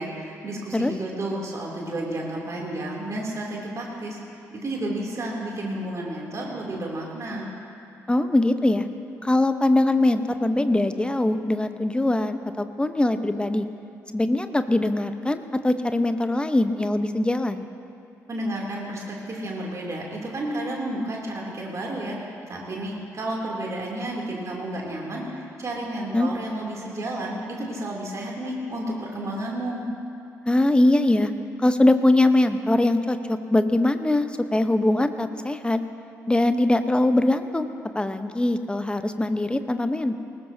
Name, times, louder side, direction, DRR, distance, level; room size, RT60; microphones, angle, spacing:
voice 1, 0.0-4.2 4.5-7.4 18.3-22.2 22.4-29.9, right 1 dB, 40° right, -2 dB, 3.0 m, -31 dB
voice 2, 8.1-8.9 9.2-13.6 14.1-17.6 26.1-26.3 30.5-31.3 31.6-35.8 36.3-40.2, left 1 dB, 10° left, 9 dB, 1.0 m, -22 dB
20.0 x 19.0 x 2.8 m, 2.6 s
figure-of-eight pair, 40°, 8 cm